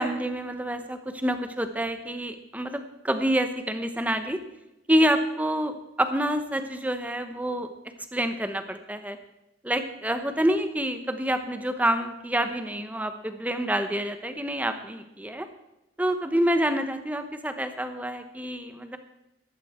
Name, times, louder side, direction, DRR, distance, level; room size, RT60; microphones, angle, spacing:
voice 1, 0.0-4.4 4.9-7.7 8.1-9.2 9.6-15.5 16.0-19.0, equal, 10° right, 8 dB, 0.9 m, -27 dB
14.0 x 12.0 x 4.4 m, 0.89 s
head